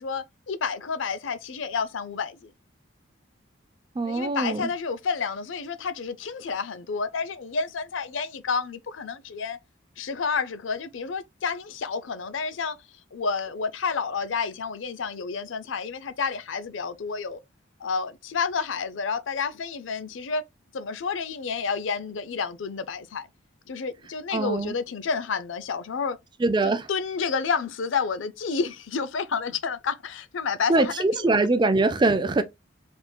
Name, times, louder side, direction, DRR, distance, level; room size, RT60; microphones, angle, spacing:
voice 1, 0.0-2.5 4.0-9.6 10.0-12.8 13.1-17.4 17.8-20.4 20.7-23.3 23.7-26.2 26.6-31.4, left 5 dB, 75° left, 0.5 m, -30 dB
voice 2, 4.0-4.7 24.3-24.8 26.4-26.9 30.7-32.4, right 2 dB, 25° right, 0.4 m, -23 dB
4.3 x 3.6 x 2.2 m
head